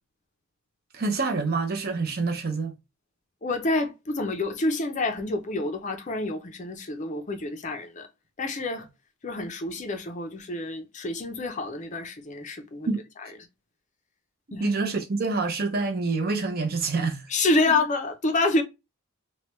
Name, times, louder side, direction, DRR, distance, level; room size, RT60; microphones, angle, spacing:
voice 1, 0.9-2.7 12.9-13.0 14.6-17.2, right 3 dB, 45° right, 0.6 m, -26 dB
voice 2, 3.4-8.1 8.4-8.9 9.2-12.9 13.2-13.3 14.5-14.7 17.3-18.6, left 2 dB, 35° left, 0.5 m, -28 dB
3.2 x 2.2 x 2.9 m
head